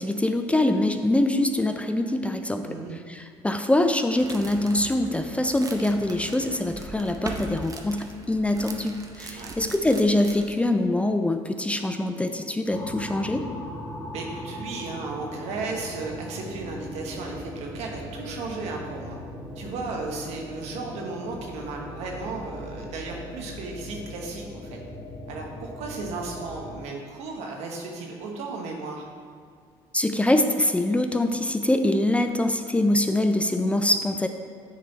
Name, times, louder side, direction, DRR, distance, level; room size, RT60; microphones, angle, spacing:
voice 1, 0.0-2.7 3.1-13.4 29.9-34.3, left 1 dB, 10° left, 7 dB, 0.4 m, -24 dB
voice 2, 2.6-2.9 9.3-9.6 14.1-19.2 19.6-24.8 25.3-29.1, right 3 dB, 75° right, 0 dB, 1.1 m, -35 dB
sound 1, 4.2-10.6, right 2 dB, 30° right, 0.8 m, -40 dB
sound 2, 12.7-26.7, left 1 dB, 45° left, 1.4 m, -39 dB
9.4 x 3.4 x 4.0 m, 2.1 s
supercardioid pair, 75°, 11 cm